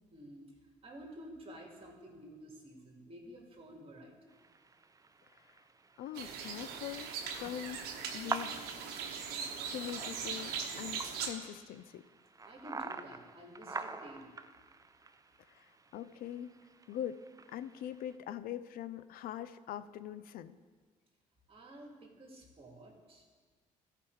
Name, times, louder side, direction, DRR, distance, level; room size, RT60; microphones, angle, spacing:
voice 1, 0.1-4.3 12.4-14.4 21.5-23.3, equal, 35° right, 0 dB, 2.2 m, -51 dB
sound 1, 4.3-18.2, right 4 dB, 20° right, 0.6 m, -47 dB
voice 2, 6.0-7.9 8.1-8.5 9.4-12.0 15.6-15.7 15.9-16.5 16.9-17.2 17.5-20.6, left 11 dB, 70° left, 15 dB, 0.5 m, -42 dB
sound 2, 6.1-11.3, right 6 dB, 80° right, 1.0 m, -40 dB
13.0 x 5.0 x 4.7 m, 1.5 s
supercardioid pair, 60°, 16 cm